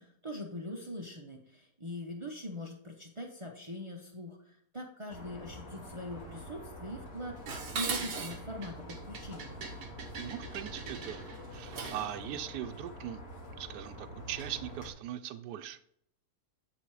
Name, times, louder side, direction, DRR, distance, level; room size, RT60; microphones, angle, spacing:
voice 1, 0.0-9.6, left 1 dB, 40° right, 1 dB, 0.4 m, -42 dB
sound 1, 5.1-14.9, equal, 70° left, 2.2 m, -46 dB
Dishes pots and pans, 7.5-12.1, right 5 dB, 60° right, 1.4 m, -40 dB
voice 2, 10.2-11.2 11.5-13.2 13.6-16.0, right 11 dB, 80° right, 10 dB, 1.2 m, -40 dB
9.2 x 3.5 x 4.8 m, 0.69 s
omnidirectional pair, 1.7 m